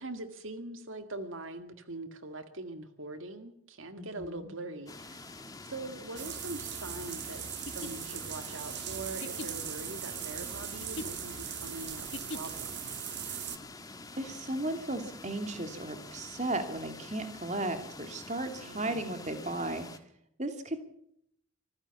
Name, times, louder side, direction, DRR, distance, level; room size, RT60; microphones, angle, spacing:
voice 1, 0.0-5.4 5.7-12.8 18.6-19.2, right 2 dB, 75° right, 8 dB, 2.0 m, -42 dB
voice 2, 4.0-4.5 14.2-19.9 20.4-20.8, right 2 dB, 35° right, 7 dB, 2.6 m, -35 dB
sound 1, 4.9-20.0, left 3 dB, 20° left, 1.6 m, -47 dB
sound 2, 6.2-13.6, right 10 dB, 55° right, 1.9 m, -40 dB
sound 3, 7.6-12.8, left 2 dB, 60° left, 1.3 m, -44 dB
25.5 x 15.0 x 7.1 m, 0.72 s
head